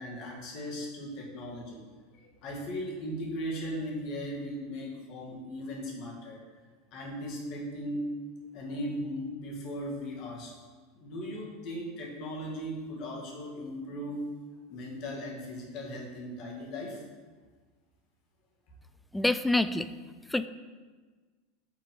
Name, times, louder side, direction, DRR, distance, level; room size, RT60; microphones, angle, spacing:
voice 1, 0.0-1.8 2.1-6.4 6.9-8.0 8.5-10.5 10.9-14.2 14.7-17.0, equal, 50° left, -2 dB, 1.9 m, -38 dB
voice 2, 19.1-19.9 20.3-20.5, left 2 dB, 5° left, 12 dB, 0.3 m, -26 dB
6.3 x 3.8 x 5.3 m, 1.4 s
hypercardioid pair, 90°, 0 cm